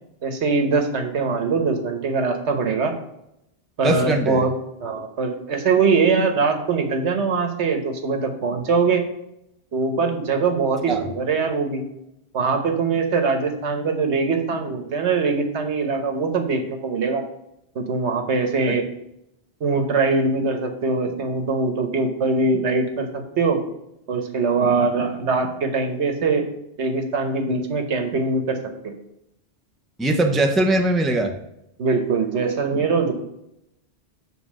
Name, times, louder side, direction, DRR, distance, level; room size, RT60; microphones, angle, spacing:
voice 1, 0.2-2.9 3.8-4.5 4.8-9.0 9.7-11.8 12.3-17.2 17.7-18.8 19.6-23.6 24.1-26.4 26.8-28.6 28.8-28.9 31.8-33.1, right 4 dB, 85° right, 5 dB, 1.3 m, -22 dB
voice 2, 3.8-4.5 10.9-11.0 18.7-18.8 30.0-31.3, right 1 dB, ahead, 3 dB, 0.5 m, -20 dB
7.4 x 3.9 x 6.1 m, 0.81 s
omnidirectional pair, 1.1 m